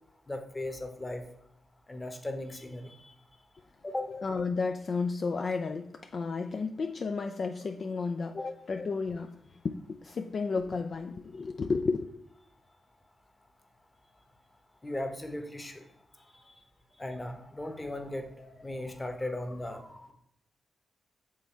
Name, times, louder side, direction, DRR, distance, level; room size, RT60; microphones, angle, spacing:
voice 1, 0.3-1.2 1.9-3.1 3.8-4.1 8.4-8.5 14.8-15.9 16.2-16.5 16.9-20.1, left 1 dB, 25° left, 1.1 m, -38 dB
voice 2, 4.1-9.4 9.6-12.0, left 4 dB, 55° left, 0.4 m, -32 dB
6.3 x 3.5 x 4.5 m
supercardioid pair, 50°, 0 cm